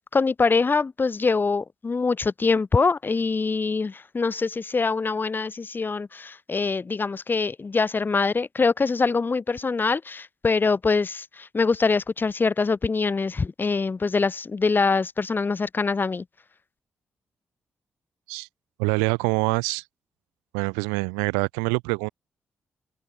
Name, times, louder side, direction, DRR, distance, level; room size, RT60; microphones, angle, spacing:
voice 1, 0.1-16.2, left 4 dB, 40° left, 1.9 m, -24 dB
voice 2, 18.8-19.8 20.5-22.1, right 39 dB, 90° right, 1.7 m, -25 dB
hypercardioid pair, 40°, 5 cm